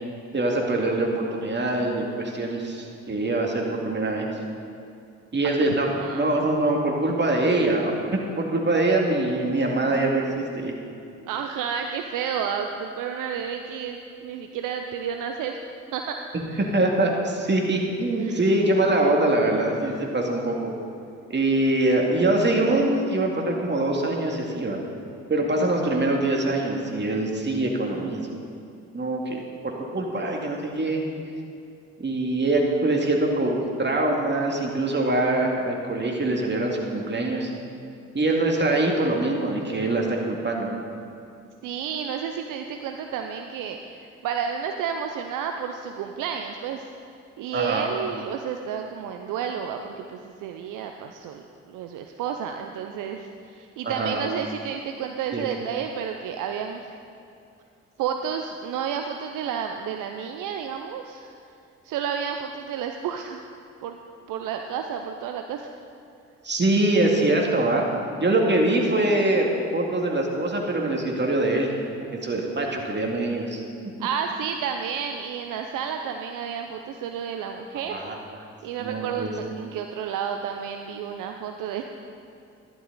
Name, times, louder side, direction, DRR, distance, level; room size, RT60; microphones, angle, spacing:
voice 1, 0.3-4.3 5.3-7.9 8.4-10.2 10.6-10.7 16.6-20.7 21.3-24.8 25.3-28.2 28.9-31.0 32.0-37.5 38.1-40.7 47.5-47.9 53.8-54.3 55.3-55.5 66.4-67.8 68.2-71.7 72.1-73.6 77.9-78.1 78.8-79.3, right 2 dB, 30° right, 0 dB, 2.4 m, -23 dB
voice 2, 5.6-6.3 11.3-15.6 15.9-16.6 18.2-18.4 19.9-20.0 22.3-22.7 41.6-46.9 47.4-56.8 58.0-61.3 61.8-63.4 63.8-64.0 64.3-65.7 74.0-78.0 78.6-81.8, right 7 dB, 65° right, 5 dB, 0.7 m, -31 dB
12.0 x 11.0 x 4.1 m, 2.5 s
hypercardioid pair, 45°, 34 cm